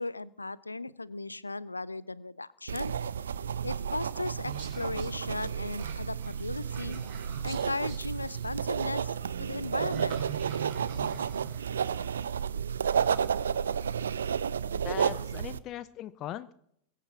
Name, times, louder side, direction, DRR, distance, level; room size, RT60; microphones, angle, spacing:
voice 1, 0.0-2.9 3.6-7.0 7.4-9.1 9.4-10.2, left 2 dB, 80° left, 22 dB, 0.5 m, -36 dB
sound 1, 2.7-15.6, right 7 dB, 70° right, 0.6 m, -32 dB
sound 2, 2.8-12.4, right 7 dB, 45° right, 4.7 m, -44 dB
voice 2, 14.7-16.5, left 12 dB, 35° left, 16 dB, 0.6 m, -39 dB
22.5 x 8.3 x 6.0 m, 0.73 s
figure-of-eight pair, 90°, 0 cm